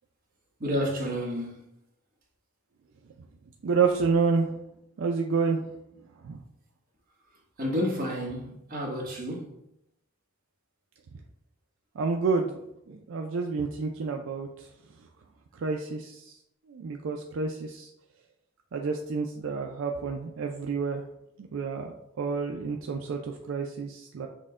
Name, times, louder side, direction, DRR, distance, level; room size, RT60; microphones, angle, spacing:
voice 1, 0.6-1.6 7.6-9.6, equal, 45° right, 1.2 m, -30 dB
voice 2, 3.6-4.5 5.0-5.6 6.2-6.4 12.0-12.6 12.9-14.7 15.5-16.3 16.7-17.9 18.7-21.0 21.4-24.3, right 4 dB, 70° right, 0.4 m, -29 dB
6.3 x 2.2 x 3.6 m
head